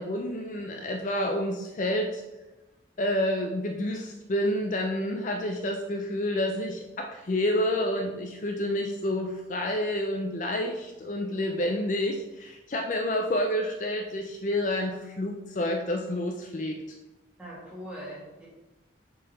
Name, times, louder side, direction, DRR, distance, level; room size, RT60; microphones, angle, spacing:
voice 1, 0.0-2.2 3.0-16.8, left 1 dB, 40° left, 3 dB, 0.4 m, -29 dB
voice 2, 17.4-18.5, equal, 5° right, -7 dB, 1.9 m, -41 dB
6.4 x 3.9 x 4.2 m, 1.1 s
head